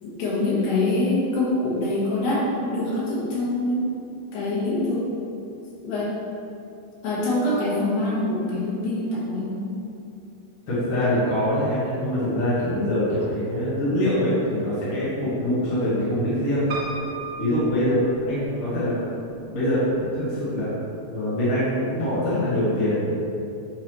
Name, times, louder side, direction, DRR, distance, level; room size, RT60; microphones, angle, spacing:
voice 1, 0.0-3.9 4.3-5.1 5.8-6.1 7.0-9.8, left 2 dB, 85° left, -6 dB, 3.1 m, -25 dB
voice 2, 10.7-16.7 17.4-18.9 19.3-20.7 21.1-23.1, left 1 dB, 50° left, -10 dB, 1.8 m, -24 dB
Piano, 16.7-18.7 19.3-20.0 20.3-20.4 20.6-20.7, right 3 dB, 85° right, 1.0 m, -35 dB
8.7 x 4.0 x 3.1 m, 2.7 s
omnidirectional pair, 3.9 m